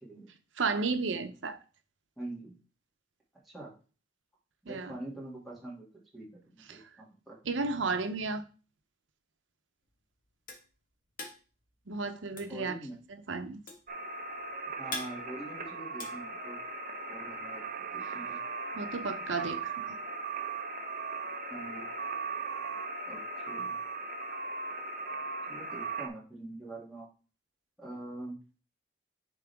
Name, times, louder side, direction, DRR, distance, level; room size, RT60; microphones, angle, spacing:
voice 1, 0.0-0.3 2.2-2.6 3.4-3.7 4.6-5.9 6.1-7.4 12.5-13.0 14.8-16.6 17.1-18.4 21.5-21.9 23.1-23.2 23.5-23.8 25.5-27.1 27.8-28.4, right 2 dB, ahead, 2.5 m, -44 dB
voice 2, 0.6-1.6 4.7-4.9 6.7-6.8 7.4-8.4 11.9-12.8 13.3-13.6 18.0-18.2 18.7-19.9, right 4 dB, 90° right, 0.8 m, -33 dB
sound 1, 9.8-17.0, left 2 dB, 45° left, 1.5 m, -45 dB
sound 2, 13.9-26.1, right 3 dB, 45° right, 0.8 m, -38 dB
10.0 x 3.8 x 3.5 m
head